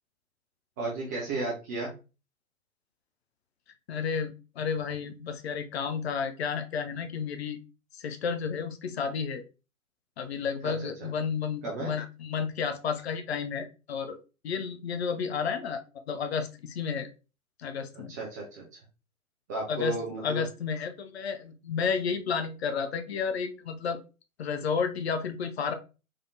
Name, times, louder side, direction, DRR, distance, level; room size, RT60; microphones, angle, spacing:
voice 1, 0.8-1.9 10.6-10.7 11.0-11.1 11.6-11.9 17.9-18.8 19.5-20.4, right 2 dB, 15° right, -3 dB, 0.4 m, -34 dB
voice 2, 3.9-7.6 7.9-9.4 10.2-14.2 14.4-15.8 16.1-17.1 17.6-18.1 19.7-20.0 20.2-24.0 24.4-25.7, left 6 dB, 50° left, 8 dB, 0.6 m, -31 dB
3.6 x 3.4 x 2.6 m, 0.32 s
figure-of-eight pair, 115°, 42 cm